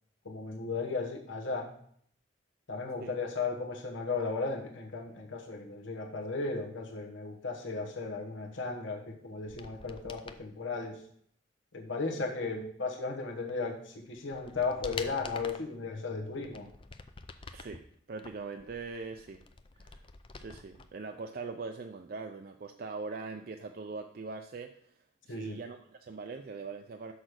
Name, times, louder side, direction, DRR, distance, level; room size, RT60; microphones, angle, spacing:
voice 1, 0.2-1.7 2.7-11.0 11.7-16.7 25.3-25.6, left 4 dB, 85° left, 1 dB, 1.1 m, -35 dB
sound 1, 9.4-10.4 13.5-13.6 14.1-15.7 16.3-17.8 18.2-20.9 21.1-21.2, left 4 dB, 25° left, 0.4 m, -46 dB
voice 2, 17.5-17.8 18.1-19.4 19.8-20.0 20.3-24.9 25.2-27.1, right 4 dB, 50° right, 5 dB, 0.4 m, -41 dB
6.3 x 5.0 x 6.3 m, 0.64 s
head